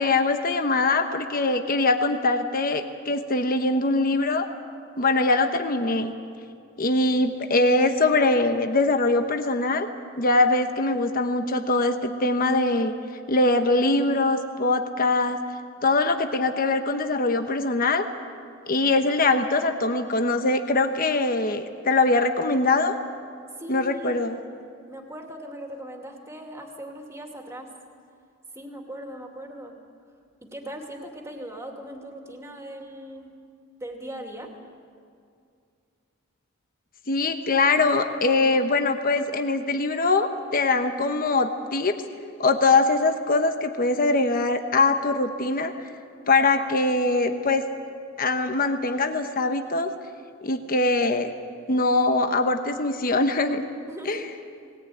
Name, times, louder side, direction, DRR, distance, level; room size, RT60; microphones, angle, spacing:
voice 1, 0.0-4.5 5.0-6.1 6.8-9.9 10.2-12.9 13.3-15.4 15.8-18.0 18.7-23.0 23.7-24.4 37.1-42.0 42.4-45.7 46.3-47.6 48.2-49.9 50.4-51.3 51.7-53.6 54.1-54.2, left 3 dB, 40° left, 6 dB, 1.1 m, -22 dB
voice 2, 23.6-24.2 24.5-24.6 24.9-27.7 28.5-29.8 30.4-33.3 33.8-34.5 53.9-54.3, right 1 dB, 15° right, 2 dB, 2.6 m, -39 dB
19.5 x 18.5 x 9.3 m, 2.3 s
head